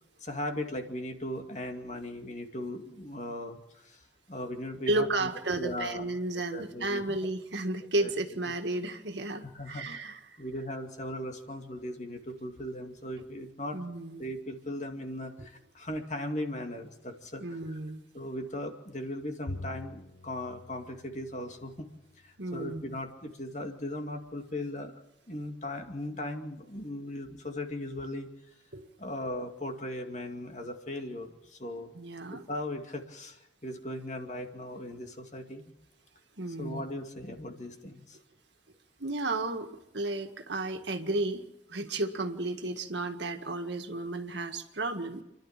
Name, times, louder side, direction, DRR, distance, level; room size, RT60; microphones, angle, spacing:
voice 1, 0.2-4.0 4.3-5.3 5.6-6.2 6.5-7.2 8.0-8.1 9.5-9.9 10.4-13.8 14.2-17.8 18.1-21.9 22.2-25.0 25.3-28.3 29.0-31.9 32.3-35.6 36.6-38.2, left 1 dB, 40° left, 4 dB, 2.3 m, -38 dB
voice 2, 4.9-10.4 13.7-14.2 15.4-15.5 17.4-18.0 22.4-22.8 28.7-28.9 31.9-32.4 36.4-36.8 39.0-41.4 41.7-45.2, right 2 dB, 70° right, 6 dB, 1.8 m, -33 dB
Bowed string instrument, 19.5-22.0, left 1 dB, 85° left, 1.2 m, -44 dB
30.0 x 12.0 x 7.4 m, 0.88 s
head